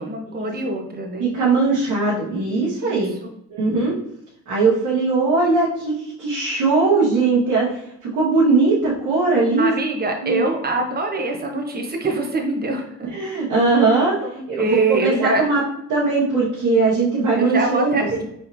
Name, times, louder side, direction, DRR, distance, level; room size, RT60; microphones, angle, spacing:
voice 1, 0.0-1.3 2.8-3.3 5.4-5.5 9.6-13.1 14.3-15.4 17.3-18.2, right 2 dB, 30° right, 2 dB, 1.0 m, -24 dB
voice 2, 1.2-3.1 3.5-3.9 4.5-7.8 8.1-9.7 10.2-10.4 13.1-14.1 14.6-14.7 15.0-15.6 15.9-18.2, right 3 dB, 85° right, -8 dB, 1.4 m, -19 dB
4.8 x 3.1 x 2.7 m, 0.76 s
cardioid pair, 90°, 30 cm